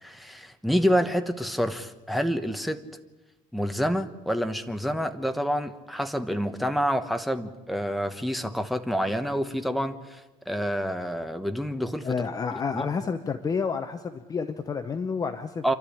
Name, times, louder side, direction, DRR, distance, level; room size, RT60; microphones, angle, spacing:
voice 1, 0.0-2.8 3.5-10.2 10.5-12.1 12.5-12.9 15.6-15.7, equal, ahead, 7 dB, 1.1 m, -28 dB
voice 2, 12.0-15.7, left 5 dB, 25° left, 8 dB, 0.9 m, -30 dB
28.0 x 12.5 x 10.0 m, 1.1 s
cardioid pair, 165°, 15 cm